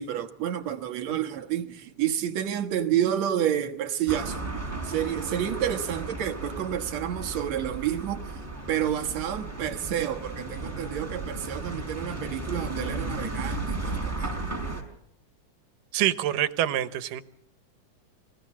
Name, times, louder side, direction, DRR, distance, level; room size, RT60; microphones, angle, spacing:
voice 1, 0.0-8.4 8.7-14.4, right 10 dB, 60° right, 2.4 m, -29 dB
sound 1, 4.1-14.8, right 2 dB, 5° right, 4.7 m, -34 dB
voice 2, 15.9-17.2, right 12 dB, 85° right, 2.6 m, -26 dB
25.0 x 16.5 x 7.3 m
omnidirectional pair, 3.7 m